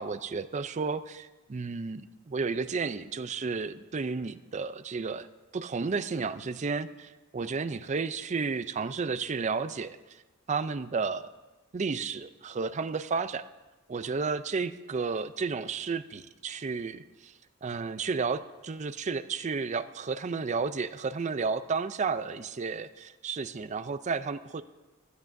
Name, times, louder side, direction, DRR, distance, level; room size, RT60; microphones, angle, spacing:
voice 1, 0.0-5.3 5.5-10.0 10.5-11.3 11.7-13.4 13.9-17.3 17.6-24.6, right 4 dB, 35° right, 13 dB, 0.4 m, -32 dB
16.0 x 12.0 x 2.6 m, 1.1 s
head